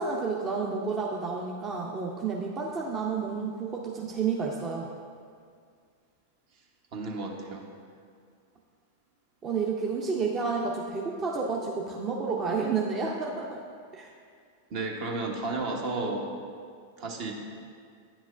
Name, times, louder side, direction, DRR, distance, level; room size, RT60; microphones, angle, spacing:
voice 1, 0.0-4.9 9.4-13.6 13.9-14.1, right 5 dB, 30° right, -2 dB, 0.6 m, -30 dB
voice 2, 6.9-7.7 14.7-16.3 17.0-17.3, right 3 dB, 55° right, 1 dB, 1.1 m, -32 dB
9.7 x 6.1 x 2.5 m, 2.2 s
hypercardioid pair, 105°, 0 cm